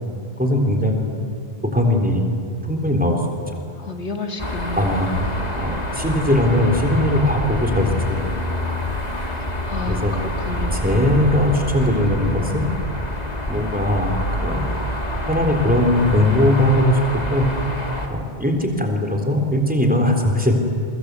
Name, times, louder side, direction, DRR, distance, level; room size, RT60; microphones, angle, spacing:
voice 1, 0.4-1.2 1.7-2.2 2.7-3.2 4.8-5.2 5.6-8.2 9.8-10.1 10.7-12.7 13.5-14.2 14.4-14.6 15.3-17.0 17.3-17.4 18.1-20.6, left 1 dB, 5° right, 3 dB, 3.6 m, -19 dB
voice 2, 3.8-4.9 9.2-9.4 9.7-10.9, left 4 dB, 75° left, 4 dB, 2.2 m, -31 dB
sound 1, 4.4-18.1, left 1 dB, 35° left, 2.7 m, -26 dB
29.5 x 23.5 x 8.3 m, 2.3 s
omnidirectional pair, 1.2 m